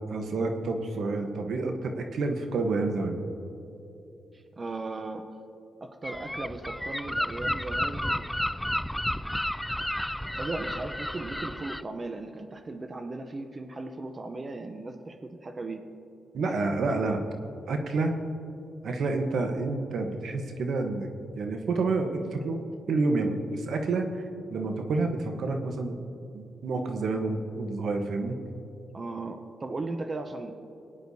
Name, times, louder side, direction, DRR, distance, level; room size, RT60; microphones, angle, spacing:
voice 1, 0.1-3.2 16.3-17.2 17.7-18.1 18.8-21.1 21.4-24.2 24.5-26.0 26.3-28.4, right 3 dB, 70° right, 4 dB, 1.1 m, -29 dB
voice 2, 4.3-5.4 5.8-8.3 10.4-15.8 28.9-30.5, right 2 dB, 35° right, 7 dB, 0.7 m, -37 dB
Gull seagull, 6.0-11.8, equal, 5° left, 0.3 m, -32 dB
20.0 x 10.0 x 2.8 m, 2.8 s
cardioid pair, 75°, 0 cm